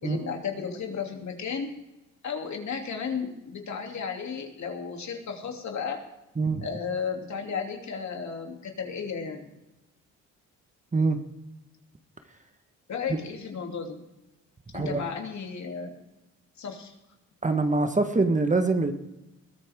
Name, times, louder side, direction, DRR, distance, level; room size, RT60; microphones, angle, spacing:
voice 1, 0.0-1.7 2.2-6.0 6.6-9.5 12.9-14.0 14.7-16.0 16.6-16.9, left 6 dB, 55° left, 2 dB, 3.1 m, -34 dB
voice 2, 6.4-6.7 10.9-11.2 13.1-13.2 14.7-15.0 17.4-18.9, right 3 dB, 20° right, 7 dB, 1.5 m, -24 dB
21.5 x 13.5 x 3.7 m, 0.97 s
supercardioid pair, 65°, 34 cm